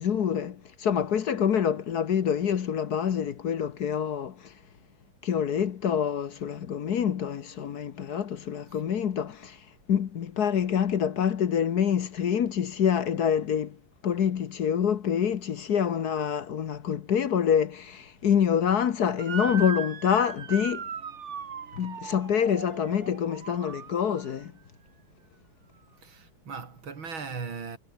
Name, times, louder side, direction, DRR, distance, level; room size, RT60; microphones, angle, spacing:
voice 1, 0.0-4.5 5.2-9.6 9.9-13.8 14.0-20.9 21.8-24.5, left 8 dB, 55° left, 1.5 m, -26 dB
Motor vehicle (road) / Siren, 19.2-24.4, right 7 dB, 40° right, 1.3 m, -38 dB
voice 2, 26.0-27.8, right 5 dB, 85° right, 3.7 m, -38 dB
omnidirectional pair, 2.2 m